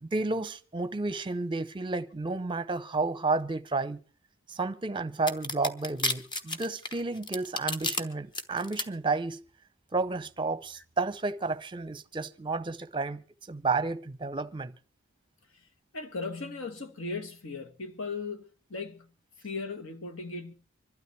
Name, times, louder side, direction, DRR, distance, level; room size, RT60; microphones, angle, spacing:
voice 1, 0.0-4.0 4.5-9.4 9.9-14.7, right 3 dB, 25° right, 0.7 m, -31 dB
sound 1, 5.3-8.0 8.3-8.8, left 2 dB, 25° left, 1.0 m, -31 dB
voice 2, 15.9-19.1 19.4-20.5, left 3 dB, 75° left, 1.4 m, -38 dB
25.5 x 12.5 x 3.3 m
head